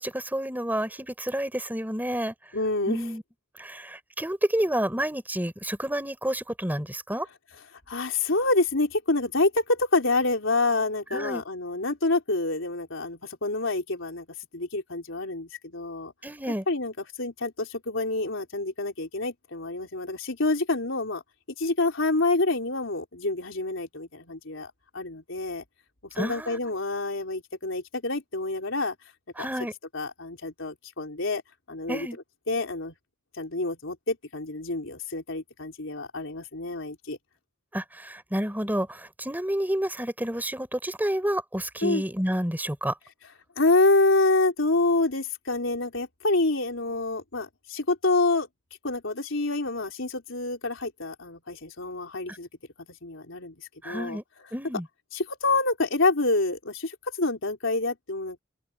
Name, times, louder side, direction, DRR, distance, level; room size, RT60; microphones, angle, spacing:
voice 1, 0.0-2.3 2.9-3.2 3.6-7.3 11.1-11.4 16.2-16.6 26.2-26.6 29.4-29.7 31.9-32.2 37.7-42.9 53.8-54.2 54.5-54.8, right 1 dB, 10° right, 3.8 m, -29 dB
voice 2, 2.5-3.1 7.5-14.3 14.5-16.1 16.7-21.2 21.6-25.6 26.2-29.0 29.4-29.5 29.9-31.4 31.7-32.1 32.5-32.9 33.4-37.2 41.8-42.0 43.6-48.5 48.8-52.5 53.0-53.5 53.8-54.2 55.1-58.4, left 2 dB, 80° left, 3.7 m, -27 dB
open air
head